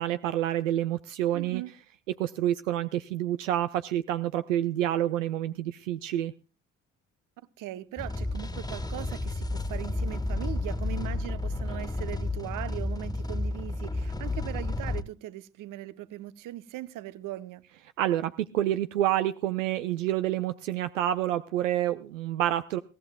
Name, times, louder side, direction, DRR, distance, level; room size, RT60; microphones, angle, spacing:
voice 1, 0.0-1.6 2.2-6.3 18.0-22.8, right 12 dB, 80° right, 0.6 m, -28 dB
voice 2, 1.3-1.7 7.6-17.6, right 14 dB, 55° right, 0.9 m, -39 dB
sound 1, 8.0-15.0, left 2 dB, 10° left, 1.8 m, -32 dB
22.0 x 16.5 x 2.3 m
figure-of-eight pair, 45°, 38 cm